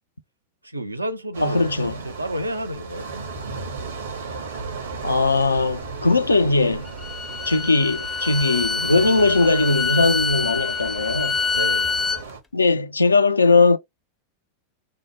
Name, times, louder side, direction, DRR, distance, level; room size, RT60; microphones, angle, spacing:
voice 1, 0.6-3.3 11.5-11.9, right 1 dB, 80° right, 0.4 m, -31 dB
sound 1, 1.3-12.4, right 4 dB, 65° right, 0.9 m, -35 dB
voice 2, 1.4-2.0 5.0-6.9 7.5-11.4 12.5-13.8, left 3 dB, 80° left, 0.3 m, -19 dB
Bowed string instrument, 6.9-12.2, left 5 dB, 15° left, 0.5 m, -26 dB
2.9 x 2.0 x 2.9 m
figure-of-eight pair, 90°, 0 cm